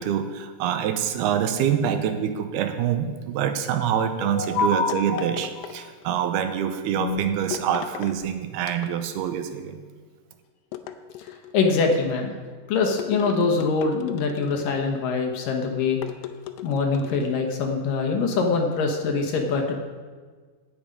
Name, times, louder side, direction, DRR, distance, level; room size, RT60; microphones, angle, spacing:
voice 1, 0.0-9.8, right 9 dB, 75° right, 8 dB, 2.5 m, -26 dB
voice 2, 4.2-5.7 7.0-7.2 11.2-11.3 11.5-12.3 12.7-16.0 16.6-19.7, left 4 dB, 65° left, 2 dB, 2.4 m, -24 dB
sound 1, 4.9-6.3 7.5-8.2 8.6-9.3 10.7-11.6 13.0-14.8 16.0-17.3, left 11 dB, 80° left, 2.5 m, -38 dB
17.0 x 7.2 x 5.2 m, 1.5 s
omnidirectional pair, 5.0 m